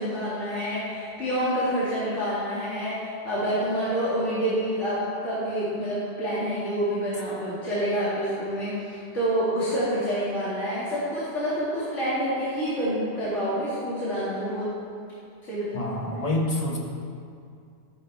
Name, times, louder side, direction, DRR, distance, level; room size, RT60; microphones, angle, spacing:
voice 1, 0.0-14.7 15.5-15.9, equal, 90° left, -11 dB, 2.9 m, -27 dB
voice 2, 15.7-16.8, left 1 dB, 35° left, -1 dB, 1.5 m, -27 dB
13.5 x 10.5 x 3.6 m, 2.4 s
omnidirectional pair, 1.2 m